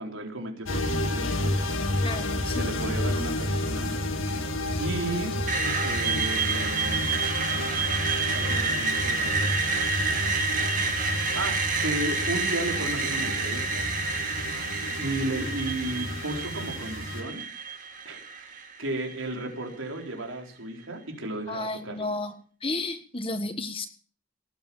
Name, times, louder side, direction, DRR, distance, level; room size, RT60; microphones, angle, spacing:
voice 1, 0.0-1.7 2.4-3.9 4.3-4.5 4.8-5.4 5.8-7.0 8.3-9.5 11.3-13.9 15.0-17.4 18.0-22.1, right 1 dB, 80° right, 2 dB, 4.3 m, -34 dB
sound 1, 0.6-17.2, left 1 dB, 80° left, 2.0 m, -31 dB
voice 2, 2.0-2.7 21.5-22.3 22.6-23.9, left 2 dB, 25° left, 9 dB, 1.5 m, -32 dB
Screech, 5.5-19.4, right 5 dB, 40° right, 2.7 m, -29 dB
19.0 x 8.4 x 7.2 m, 0.43 s
head